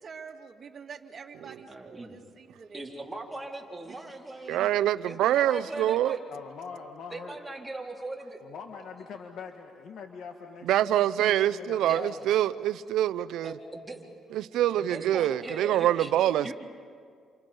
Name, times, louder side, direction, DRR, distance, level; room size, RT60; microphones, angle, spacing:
voice 1, 0.0-2.9 3.9-4.0, right 5 dB, 45° right, 2.2 m, -46 dB
voice 2, 1.7-2.2 2.7-4.7 5.1-6.2 7.1-8.4 11.8-12.1 13.4-14.0 14.8-16.1 16.4-16.5, right 2 dB, 10° right, 4.1 m, -39 dB
voice 3, 4.5-6.2 10.7-13.5 14.3-16.5, right 12 dB, 85° right, 0.6 m, -25 dB
voice 4, 6.3-7.4 8.4-11.1 11.4-12.2, left 5 dB, 70° left, 1.7 m, -43 dB
29.0 x 29.0 x 5.4 m
cardioid pair, 90°, 0 cm